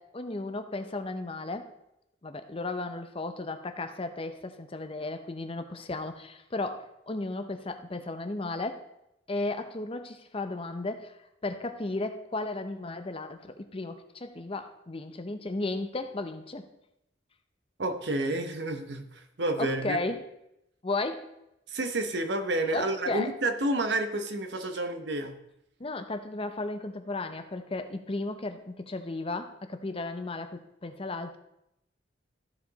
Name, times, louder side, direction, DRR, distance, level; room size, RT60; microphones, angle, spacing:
voice 1, 0.0-1.7 2.2-8.8 9.3-11.1 11.4-16.7 19.6-20.2 20.8-21.3 22.7-23.3 25.8-31.4, left 2 dB, 30° left, 8 dB, 0.7 m, -34 dB
voice 2, 17.8-20.0 21.7-25.4, right 2 dB, 65° right, 7 dB, 0.9 m, -30 dB
14.0 x 5.0 x 4.0 m, 0.83 s
head